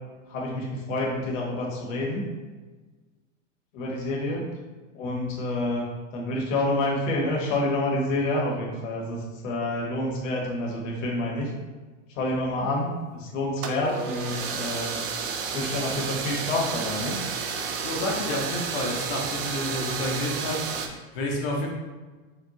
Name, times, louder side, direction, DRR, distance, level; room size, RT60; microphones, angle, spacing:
voice 1, 0.3-2.3 3.7-4.5 4.9-11.5 12.2-15.0 15.5-17.2, left 1 dB, 75° left, -2 dB, 1.2 m, -28 dB
sound 1, 13.6-20.9, right 6 dB, 50° right, 0.5 m, -31 dB
voice 2, 17.8-21.7, left 1 dB, 45° left, -1 dB, 0.7 m, -30 dB
4.4 x 2.3 x 3.7 m, 1.3 s
supercardioid pair, 165°, 39 cm